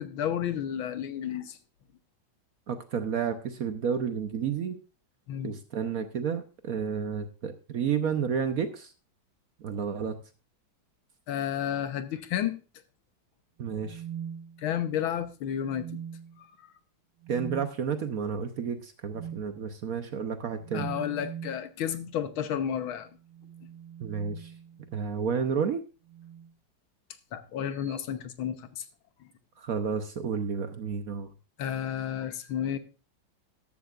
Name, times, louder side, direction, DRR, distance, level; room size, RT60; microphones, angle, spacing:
voice 1, 0.0-1.6 5.3-5.5 11.3-12.6 14.6-16.0 16.4-16.7 20.7-23.1 27.3-28.9 31.6-32.8, left 9 dB, 85° left, 10 dB, 1.8 m, -32 dB
voice 2, 2.7-4.8 5.4-8.9 9.6-10.2 13.6-14.0 17.3-20.9 24.0-24.5 24.9-25.8 29.6-31.3, right 6 dB, 60° right, 8 dB, 1.0 m, -31 dB
sound 1, 13.7-15.0 15.6-16.4 17.2-17.7 19.1-19.5 20.6-21.6 23.1-25.0 26.0-26.5 27.7-28.0, right 9 dB, 40° right, 1.7 m, -42 dB
13.5 x 12.5 x 2.4 m, 0.32 s
omnidirectional pair, 2.2 m